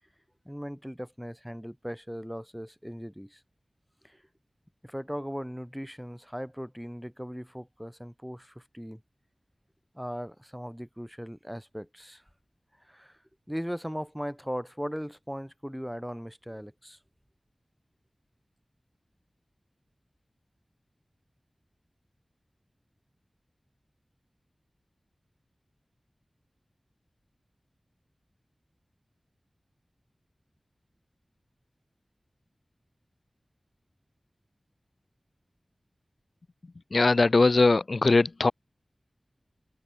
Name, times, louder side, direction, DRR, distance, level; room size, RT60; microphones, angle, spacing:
voice 1, 0.4-3.4 4.0-4.2 4.8-9.0 9.9-12.2 12.8-13.2 13.5-17.0, equal, ahead, 1.3 m, -38 dB
voice 2, 36.9-38.5, left 3 dB, 65° left, 0.8 m, -21 dB
wide cardioid pair, 70°, 0 cm